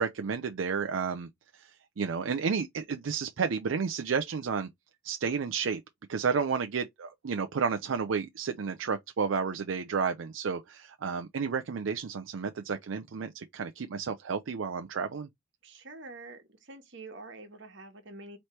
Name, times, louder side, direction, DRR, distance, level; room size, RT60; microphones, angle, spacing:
voice 1, 0.0-1.7 2.0-4.7 5.0-5.8 6.1-15.3, right 5 dB, 85° right, 0.5 m, -31 dB
voice 2, 15.6-18.4, right 2 dB, 65° right, 1.3 m, -46 dB
4.3 x 3.1 x 3.2 m
head